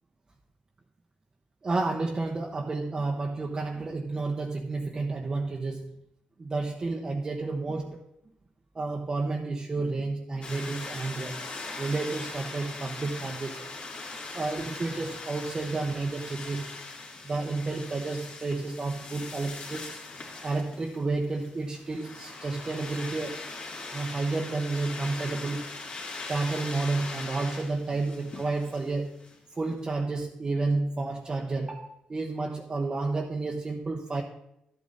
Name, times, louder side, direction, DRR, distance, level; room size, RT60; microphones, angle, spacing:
voice 1, 1.6-5.9 6.4-8.0 8.7-11.4 11.8-13.7 14.3-16.7 17.2-19.9 20.4-23.4 23.9-25.7 26.3-29.1 29.6-34.2, right 3 dB, 30° right, 0 dB, 1.0 m, -31 dB
sound 1, 10.4-29.4, left 3 dB, 50° left, 2.8 m, -41 dB
12.0 x 8.6 x 4.1 m, 0.81 s
cardioid pair, 110°, 3 cm